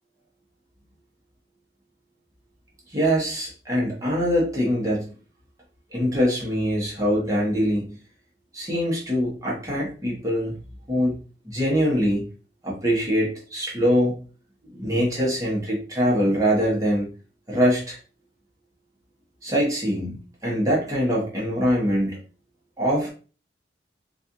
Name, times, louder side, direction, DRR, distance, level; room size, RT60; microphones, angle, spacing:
voice 1, 2.9-5.1 5.9-8.0 8.5-10.5 10.9-11.2 11.4-12.3 12.6-14.2 14.7-17.1 17.5-18.0 19.4-22.2 22.8-23.1, equal, 20° right, -5 dB, 1.0 m, -23 dB
4.2 x 2.4 x 2.6 m, 0.37 s
head